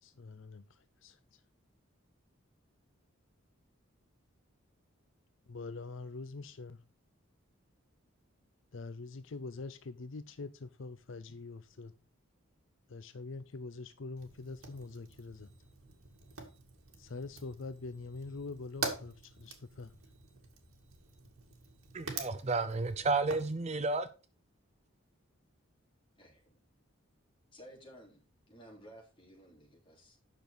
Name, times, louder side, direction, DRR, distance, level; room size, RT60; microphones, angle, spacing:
voice 1, 0.0-1.4 5.5-6.8 8.7-11.9 12.9-15.5 17.0-19.9, left 3 dB, 65° left, 0.6 m, -44 dB
Fire, 14.2-23.5, right 4 dB, 90° right, 2.1 m, -45 dB
voice 2, 21.9-24.1, right 3 dB, 30° right, 0.5 m, -32 dB
voice 3, 26.2-26.6 27.5-28.2 28.5-30.2, equal, 25° left, 3.4 m, -55 dB
9.2 x 6.2 x 5.0 m
head